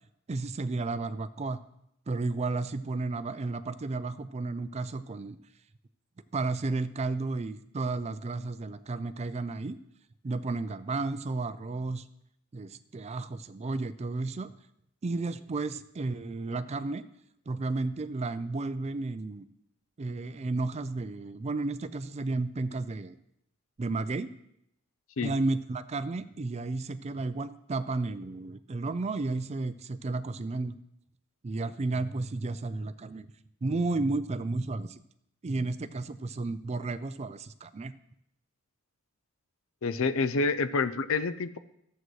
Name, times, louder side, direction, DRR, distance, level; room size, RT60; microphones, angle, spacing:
voice 1, 0.3-1.6 2.1-5.4 6.3-9.8 10.2-12.0 12.5-14.5 15.0-17.0 17.5-19.5 20.0-23.2 23.8-24.3 25.2-30.8 31.4-33.3 33.6-35.0 35.4-37.9, right 3 dB, 30° right, 13 dB, 0.4 m, -32 dB
voice 2, 39.8-41.6, left 4 dB, 65° left, 13 dB, 0.5 m, -28 dB
14.5 x 7.7 x 3.2 m, 0.77 s
head